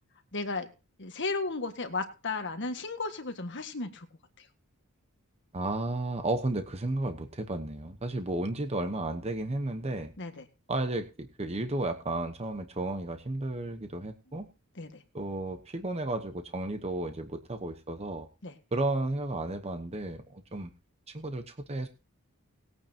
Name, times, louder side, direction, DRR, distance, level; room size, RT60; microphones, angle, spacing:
voice 1, 0.3-0.7 1.0-4.1 4.4-4.5 10.2-10.4 14.8-15.0 18.4-18.6, left 3 dB, 55° left, 6 dB, 1.7 m, -34 dB
voice 2, 5.5-10.1 10.7-14.5 15.1-18.3 18.7-20.7 21.1-21.9, right 2 dB, 30° right, 7 dB, 1.0 m, -33 dB
19.5 x 9.0 x 2.9 m, 0.31 s
head